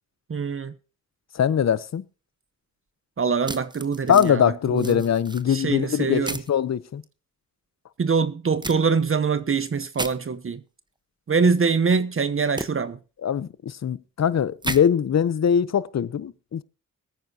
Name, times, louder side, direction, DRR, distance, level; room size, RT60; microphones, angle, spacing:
voice 1, 0.3-0.7 3.2-5.0 5.5-6.4 8.0-10.6 11.3-13.0, right 5 dB, 40° right, 0.9 m, -24 dB
voice 2, 1.3-2.0 4.1-7.0 13.2-16.6, left 8 dB, 55° left, 0.8 m, -22 dB
sound 1, 3.4-4.3 4.8-5.4 6.2-6.5 8.6-8.8 9.9-10.1 12.6-12.7 14.6-14.8, right 2 dB, 15° right, 1.0 m, -32 dB
21.5 x 9.2 x 2.8 m
cardioid pair, 70°, 33 cm